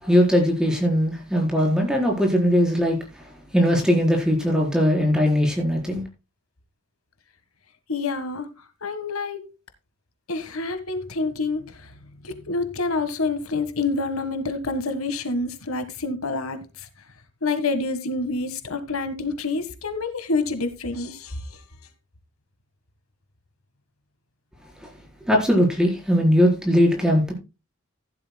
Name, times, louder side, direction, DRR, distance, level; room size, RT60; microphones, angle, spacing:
voice 1, 0.0-3.0 3.5-6.0 24.8-24.9 25.3-27.3, equal, 5° right, 4.3 m, -20 dB
voice 2, 7.9-8.5 8.8-9.5 10.3-11.9 12.2-16.9 17.4-21.6, left 3 dB, 75° left, 1.6 m, -27 dB
15.0 x 11.5 x 2.2 m
head